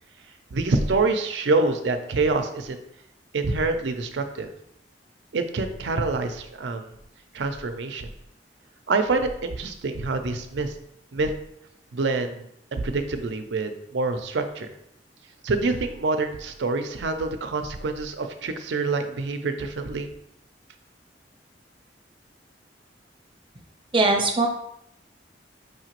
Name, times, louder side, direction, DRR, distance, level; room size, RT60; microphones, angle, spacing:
voice 1, 0.5-2.8 3.3-4.5 5.3-6.9 7.3-8.1 8.9-10.7 11.1-11.3 11.9-14.7 15.4-20.1, right 3 dB, 80° right, 6 dB, 0.5 m, -26 dB
voice 2, 23.9-24.5, right 3 dB, 30° right, 1 dB, 0.7 m, -20 dB
5.3 x 2.9 x 2.9 m, 0.76 s
head